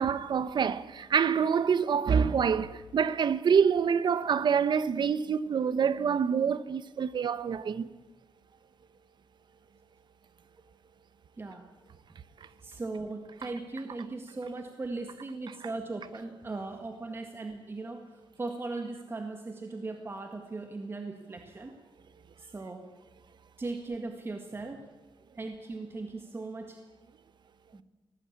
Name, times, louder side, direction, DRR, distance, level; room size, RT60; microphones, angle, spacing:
voice 1, 0.0-7.9, right 7 dB, 60° right, 1.0 m, -26 dB
voice 2, 11.4-11.7 12.6-18.0 18.4-21.7 22.4-22.9 23.6-24.9 25.4-26.8 27.7-27.8, right 3 dB, 25° right, 1.8 m, -38 dB
24.5 x 18.5 x 8.7 m
wide cardioid pair, 160°, 9 cm